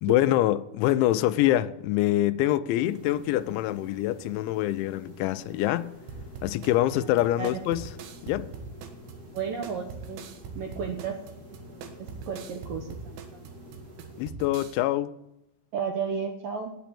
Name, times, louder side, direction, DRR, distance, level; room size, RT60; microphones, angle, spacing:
voice 1, 0.0-5.9 6.4-7.9 8.2-8.5 14.2-15.1, left 14 dB, 85° left, 2.9 m, -25 dB
sound 1, 2.8-14.3, left 1 dB, 35° right, 1.5 m, -48 dB
sound 2, 6.1-14.8, right 4 dB, 90° right, 3.9 m, -42 dB
voice 2, 9.3-10.2 10.6-11.2 11.5-13.5 15.7-16.8, right 6 dB, 75° right, 2.1 m, -33 dB
13.0 x 9.2 x 8.6 m
omnidirectional pair, 5.3 m